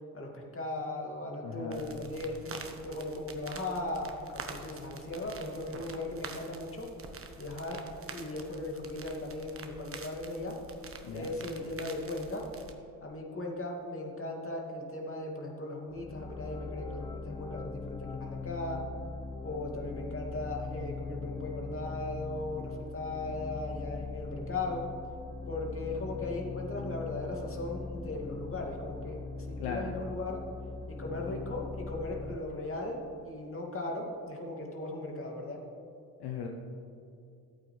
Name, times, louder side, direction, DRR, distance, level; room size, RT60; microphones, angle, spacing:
voice 1, 0.1-2.5 2.8-6.9 7.4-7.8 8.1-10.6 11.1-12.4 13.0-18.8 19.4-24.9 25.5-30.4 30.9-35.6, left 2 dB, 30° left, 0 dB, 2.4 m, -37 dB
voice 2, 1.4-1.8 11.0-11.3 29.6-30.0 36.2-36.5, left 6 dB, 60° left, 2 dB, 1.1 m, -37 dB
sound 1, 1.7-12.7, right 4 dB, 30° right, 1.2 m, -47 dB
sound 2, 15.9-32.4, left 4 dB, 10° left, 0.3 m, -41 dB
14.5 x 8.5 x 3.3 m, 2.5 s
hypercardioid pair, 55°, 45 cm